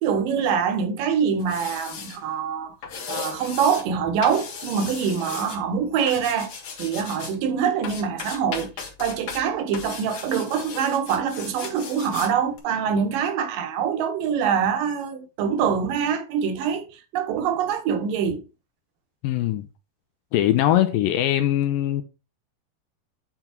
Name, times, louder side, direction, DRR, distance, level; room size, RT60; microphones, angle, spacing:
voice 1, 0.0-2.8 3.1-6.5 6.8-8.7 9.0-18.4, right 7 dB, 70° right, 2.6 m, -24 dB
sound 1, 1.4-2.2 2.8-3.9 4.2-5.6 6.1-7.4 7.8-9.4 9.7-12.3 12.6-12.7, left 6 dB, 50° left, 2.3 m, -36 dB
voice 2, 19.2-19.7 20.3-22.0, left 12 dB, 80° left, 2.2 m, -21 dB
9.1 x 4.0 x 4.3 m
omnidirectional pair, 4.3 m